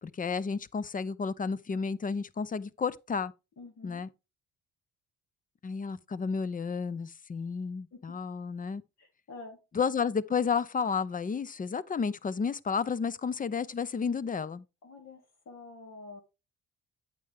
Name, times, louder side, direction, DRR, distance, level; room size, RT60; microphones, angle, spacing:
voice 1, 0.0-3.3 3.8-4.1 5.6-8.8 9.7-14.6, left 5 dB, 25° left, 0.6 m, -32 dB
voice 2, 3.6-4.0 7.9-8.0 9.0-9.6 14.8-15.2 15.5-16.2, left 3 dB, 60° left, 3.6 m, -47 dB
9.0 x 6.8 x 3.5 m
cardioid pair, 90°, 30 cm